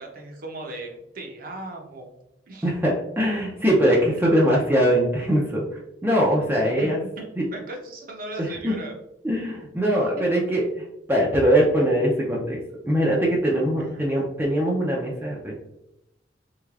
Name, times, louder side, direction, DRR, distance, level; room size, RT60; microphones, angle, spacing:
voice 1, 0.0-2.1 2.5-2.7 4.4-4.5 6.8-9.0 9.4-9.5 9.9-10.2 13.8-14.2, right 2 dB, 55° right, 2 dB, 0.7 m, -38 dB
voice 2, 2.6-7.0 8.4-8.7 9.2-12.6 12.9-15.5, equal, 10° right, -4 dB, 0.5 m, -22 dB
3.4 x 3.2 x 2.3 m, 0.87 s
head